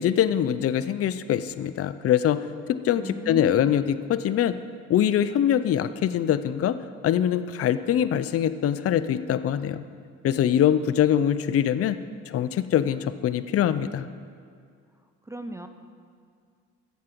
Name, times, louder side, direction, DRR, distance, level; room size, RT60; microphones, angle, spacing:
voice 1, 0.0-4.6 4.9-6.8 7.0-9.8 10.2-12.0 12.3-14.1, left 10 dB, 50° left, 13 dB, 0.5 m, -23 dB
voice 2, 3.0-3.7 15.2-15.7, right 2 dB, 10° right, 7 dB, 0.5 m, -36 dB
13.0 x 7.5 x 4.5 m, 2.2 s
cardioid pair, 90°, 30 cm